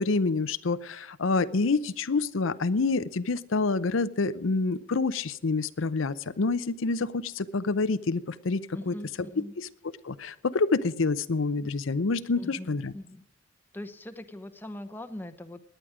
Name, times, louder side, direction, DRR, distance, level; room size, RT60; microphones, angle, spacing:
voice 1, 0.0-8.9 9.6-9.7 10.0-12.9, left 3 dB, 80° left, 13 dB, 0.6 m, -27 dB
voice 2, 8.7-9.5 12.4-13.2 13.7-15.6, left 1 dB, 10° left, 8 dB, 0.9 m, -41 dB
18.0 x 10.5 x 4.9 m, 0.77 s
head